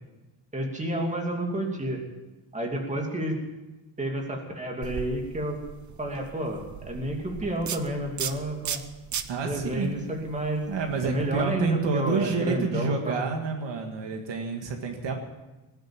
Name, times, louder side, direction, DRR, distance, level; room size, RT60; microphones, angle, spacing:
voice 1, 0.5-2.0 2.5-3.4 4.0-5.6 6.0-8.8 9.4-10.6 11.0-13.2, right 1 dB, 15° right, 1 dB, 2.6 m, -30 dB
sound 1, 4.8-11.4, right 8 dB, 40° right, 0.8 m, -38 dB
voice 2, 9.3-9.9 10.7-15.1, right 4 dB, 65° right, 4 dB, 1.9 m, -28 dB
19.0 x 8.2 x 8.7 m, 1.1 s
cardioid pair, 160°, 47 cm